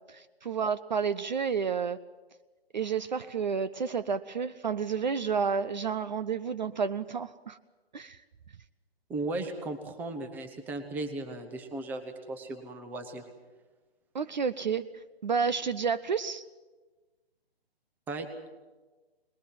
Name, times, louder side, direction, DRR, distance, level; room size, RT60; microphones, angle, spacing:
voice 1, 0.0-2.0 2.7-7.6 7.9-8.2 14.1-14.9 15.2-16.4, right 6 dB, 45° right, 13 dB, 0.6 m, -30 dB
voice 2, 9.1-13.3 18.1-18.3, right 2 dB, 5° right, 7 dB, 0.9 m, -36 dB
22.0 x 20.5 x 7.6 m, 1.3 s
figure-of-eight pair, 140°, 31 cm